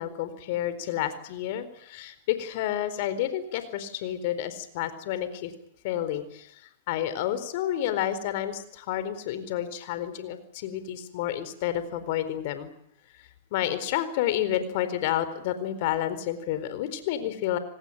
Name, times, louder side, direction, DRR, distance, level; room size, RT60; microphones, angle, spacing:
voice 1, 0.0-5.5 5.8-12.7 13.2-17.6, left 11 dB, 55° left, 12 dB, 4.4 m, -30 dB
27.5 x 18.5 x 9.2 m, 0.76 s
hypercardioid pair, 120°, 0 cm